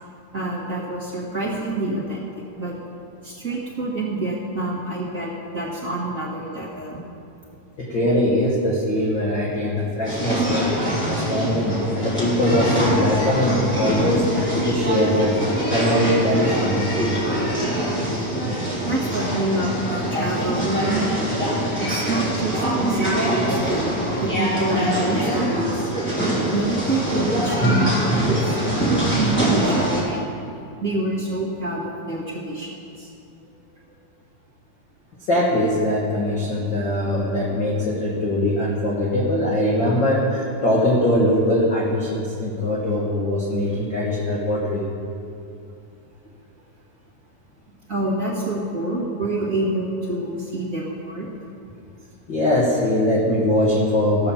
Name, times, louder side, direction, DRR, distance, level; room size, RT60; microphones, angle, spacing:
voice 1, 0.3-2.7 3.2-7.0 18.1-18.2 18.8-21.1 21.8-23.9 24.2-25.8 26.5-30.2 30.8-33.1 47.9-51.3, right 2 dB, 60° right, -7 dB, 0.8 m, -27 dB
voice 2, 7.8-10.7 11.1-15.4 15.7-16.8 18.5-18.6 35.3-44.8 52.3-54.3, left 1 dB, 55° left, -5 dB, 1.3 m, -21 dB
sound 1, 10.0-30.0, right 1 dB, 5° left, 2.9 m, -23 dB
15.5 x 5.8 x 7.1 m, 2.5 s
omnidirectional pair, 4.3 m